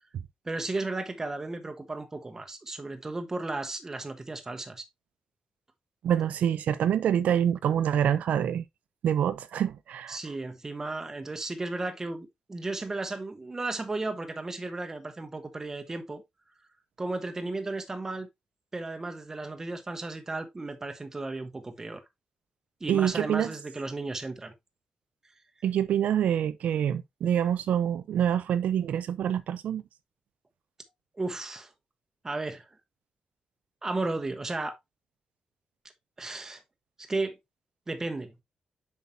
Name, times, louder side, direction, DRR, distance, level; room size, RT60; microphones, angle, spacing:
voice 1, 0.4-4.9 10.1-16.2 17.0-18.3 18.7-22.0 22.8-24.5 31.1-31.7 32.2-32.7 33.8-34.8 36.2-36.6 37.0-37.4 37.9-38.3, right 2 dB, 20° right, 1.1 m, -34 dB
voice 2, 6.0-8.6 9.0-10.2 22.9-23.5 25.6-29.8, right 9 dB, 85° right, 0.5 m, -26 dB
7.3 x 5.8 x 2.7 m
wide cardioid pair, 145°, 2 cm